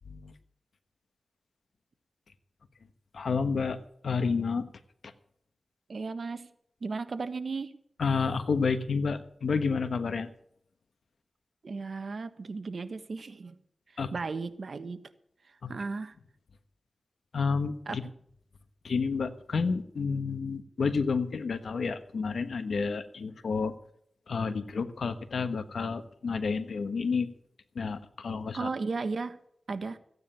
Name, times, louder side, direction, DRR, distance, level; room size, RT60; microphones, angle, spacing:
voice 1, 3.1-3.8 4.0-4.6 8.0-10.3 14.0-14.1 15.6-15.7 17.3-18.0 18.8-23.7 24.3-27.3 27.7-28.7, left 5 dB, 85° left, 10 dB, 1.3 m, -30 dB
voice 2, 5.9-6.5 6.8-7.7 11.6-13.6 14.1-15.0 15.7-16.1 17.9-18.1 28.5-29.4 29.7-30.0, right 4 dB, 70° right, 11 dB, 1.3 m, -35 dB
15.0 x 9.6 x 6.9 m, 0.68 s
cardioid pair, 60°, 0 cm